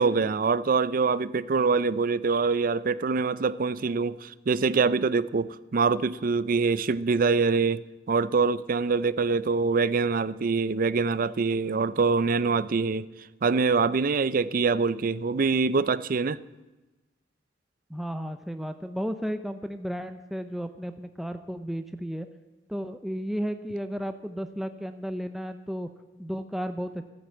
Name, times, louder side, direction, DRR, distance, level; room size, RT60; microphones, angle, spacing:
voice 1, 0.0-7.8 8.1-13.1 13.4-16.4, right 4 dB, 50° right, 0.4 m, -24 dB
voice 2, 17.9-22.3 22.7-25.9 26.2-27.0, equal, ahead, 0.5 m, -33 dB
13.5 x 9.5 x 7.6 m
head